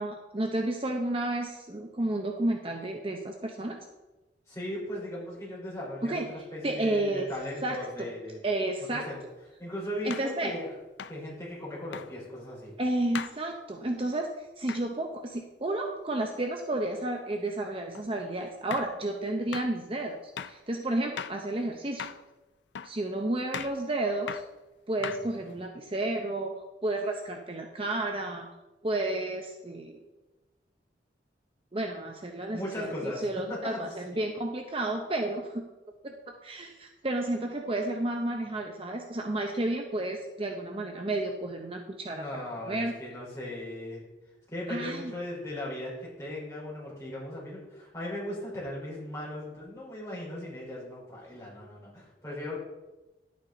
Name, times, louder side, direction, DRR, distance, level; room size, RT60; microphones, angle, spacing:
voice 1, 0.0-3.8 6.0-6.3 6.6-7.3 7.6-8.1 8.4-9.1 10.0-10.6 12.8-14.3 14.6-20.2 20.5-22.1 22.8-24.4 24.9-28.5 28.8-30.0 31.7-35.7 36.0-36.1 36.4-42.9 44.7-45.1, right 2 dB, 30° right, 3 dB, 0.7 m, -31 dB
voice 2, 4.5-8.4 8.9-9.2 9.6-10.8 11.1-12.7 25.0-25.5 32.5-33.9 42.1-44.0 44.5-52.6, left 1 dB, 15° left, -5 dB, 4.1 m, -38 dB
sound 1, 9.0-9.2 10.1-10.3 11.0-11.2 11.9-12.1 13.1-13.4 14.7-14.9 17.9-18.1 18.7-19.0 19.5-19.7 20.4-20.6 21.2-21.4 22.0-22.3 22.7-23.0 23.5-23.8 24.3-24.5 25.0-25.5, left 7 dB, 75° left, 0.5 m, -38 dB
11.0 x 8.6 x 3.9 m, 1.1 s
head